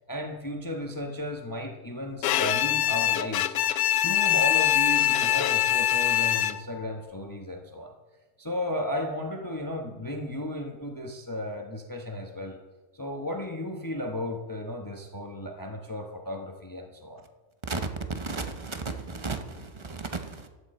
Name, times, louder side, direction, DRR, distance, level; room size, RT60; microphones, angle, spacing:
voice 1, 0.0-3.6 4.0-7.9 8.4-12.6 12.9-17.2, left 1 dB, 15° left, 0.9 m, -34 dB
Bowed string instrument, 2.2-6.8, left 12 dB, 85° left, 1.1 m, -24 dB
voice 2, 18.1-20.5, right 3 dB, 30° right, 0.6 m, -34 dB
15.0 x 10.5 x 4.3 m
omnidirectional pair, 1.5 m